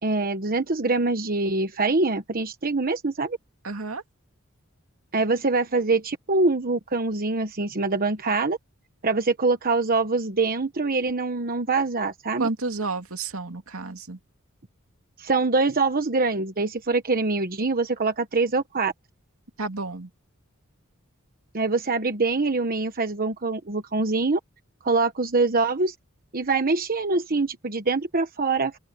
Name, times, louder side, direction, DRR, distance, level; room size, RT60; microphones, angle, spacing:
voice 1, 0.0-3.4 5.1-8.6 9.0-12.5 15.2-18.9 21.5-24.4 24.8-25.9 26.3-28.8, right 3 dB, 45° right, 1.2 m, -24 dB
voice 2, 3.6-4.0 12.4-14.2 19.6-20.1, right 3 dB, 80° right, 2.6 m, -31 dB
open air
head